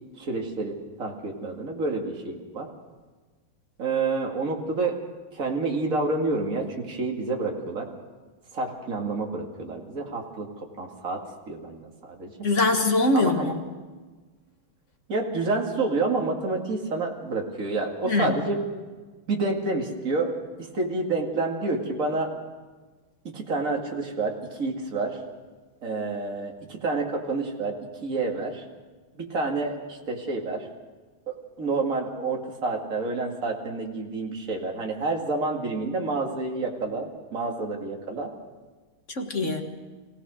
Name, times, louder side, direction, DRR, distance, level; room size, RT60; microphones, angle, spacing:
voice 1, 0.2-2.7 3.8-5.0 5.3-7.9 8.5-12.3 13.1-13.5 15.1-18.6 19.3-20.3 20.6-22.3 23.2-25.2 25.8-27.8 28.0-28.6 29.1-30.7 31.3-38.3, right 3 dB, 40° right, 1 dB, 2.6 m, -29 dB
voice 2, 12.4-13.6 18.1-18.4 39.1-39.6, left 2 dB, 40° left, 4 dB, 1.8 m, -23 dB
24.5 x 17.0 x 6.4 m, 1.3 s
omnidirectional pair, 2.3 m